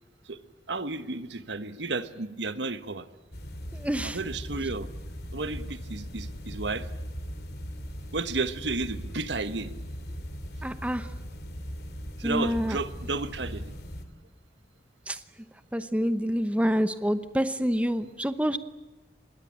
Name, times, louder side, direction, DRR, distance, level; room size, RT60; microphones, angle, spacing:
voice 1, 0.7-3.1 4.0-4.9 5.3-6.9 8.1-9.7 12.2-13.8, right 3 dB, 80° right, 12 dB, 1.3 m, -32 dB
sound 1, 3.3-14.1, equal, 60° left, 3.0 m, -39 dB
voice 2, 3.7-4.2 10.6-11.1 12.2-12.8 15.1-15.2 15.7-18.6, equal, 5° right, 11 dB, 0.9 m, -27 dB
26.5 x 22.0 x 8.8 m, 1.1 s
head